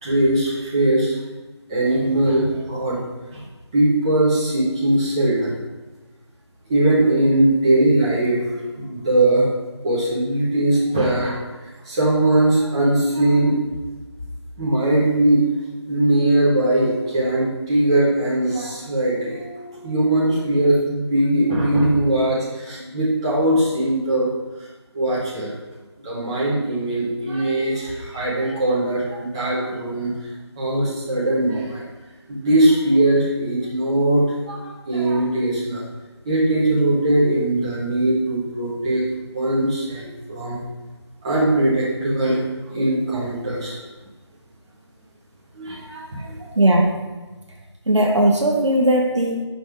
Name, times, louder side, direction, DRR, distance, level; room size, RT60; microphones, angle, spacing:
voice 1, 0.0-1.2 1.7-3.0 3.3-3.4 3.7-5.5 6.7-8.4 8.8-9.5 9.8-11.4 11.8-13.6 14.6-15.4 15.9-24.3 24.9-25.5 26.0-30.1 30.6-31.9 32.3-35.8 36.2-39.0 39.3-40.6 41.2-42.4 42.7-43.8 45.5-46.3, right 1 dB, 10° right, -8 dB, 0.8 m, -20 dB
voice 2, 46.6-47.0 47.9-49.4, right 1 dB, 80° right, 0 dB, 0.9 m, -18 dB
5.4 x 5.2 x 3.4 m, 1.3 s
figure-of-eight pair, 165°, 15 cm